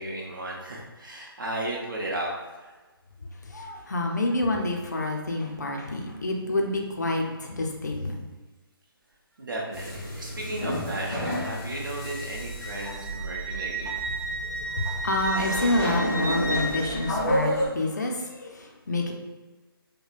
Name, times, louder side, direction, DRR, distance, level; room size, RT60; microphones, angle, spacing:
voice 1, 0.0-2.3 2.6-2.7 9.4-13.9, right 1 dB, 55° right, -3 dB, 0.9 m, -34 dB
voice 2, 3.4-8.2 14.4-19.1, left 2 dB, 45° left, 1 dB, 0.5 m, -28 dB
sound 1, 9.7-17.7, equal, 10° left, 0.7 m, -31 dB
Wind instrument woodwind instrument, 11.3-17.0, right 2 dB, 35° right, 0.5 m, -34 dB
5.1 x 2.1 x 2.4 m, 1.2 s
hypercardioid pair, 175°, 13 cm